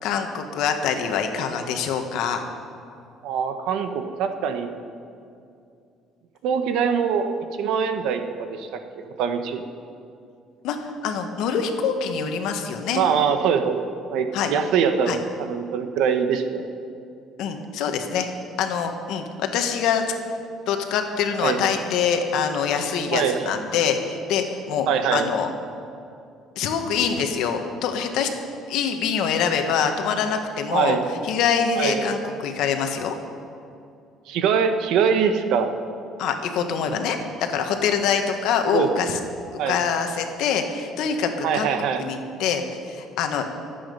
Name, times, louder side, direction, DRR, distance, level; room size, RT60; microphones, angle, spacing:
voice 1, 0.0-2.4 10.6-13.0 14.3-14.5 15.1-15.2 17.4-18.3 18.6-20.0 20.7-25.5 26.5-28.3 28.7-31.0 31.2-33.2 36.2-39.2 39.5-41.7 42.0-43.4, left 7 dB, 70° left, 5 dB, 1.4 m, -25 dB
voice 2, 3.2-4.8 6.4-7.3 7.6-8.8 9.2-9.6 12.9-13.8 14.1-16.7 21.4-21.6 23.1-23.5 24.9-25.3 30.7-31.0 31.8-32.0 34.3-35.7 38.7-39.2 39.6-39.8 41.4-42.0, right 7 dB, 70° right, 7 dB, 1.1 m, -23 dB
24.0 x 8.6 x 5.5 m, 2.5 s
cardioid pair, 170°, 0 cm